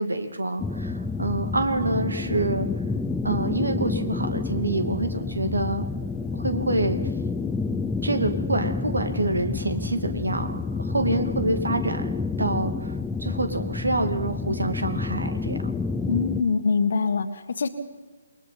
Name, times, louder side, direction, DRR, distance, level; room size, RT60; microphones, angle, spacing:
voice 1, 0.0-2.7 3.2-5.8 6.3-7.0 8.0-12.1 12.4-12.9 13.2-15.7, right 2 dB, 70° right, 7 dB, 2.4 m, -27 dB
sound 1, 0.6-16.4, left 4 dB, 5° left, 0.6 m, -29 dB
voice 2, 16.1-17.7, left 5 dB, 55° left, 9 dB, 1.7 m, -24 dB
28.5 x 21.5 x 4.3 m, 1.3 s
figure-of-eight pair, 135°, 0 cm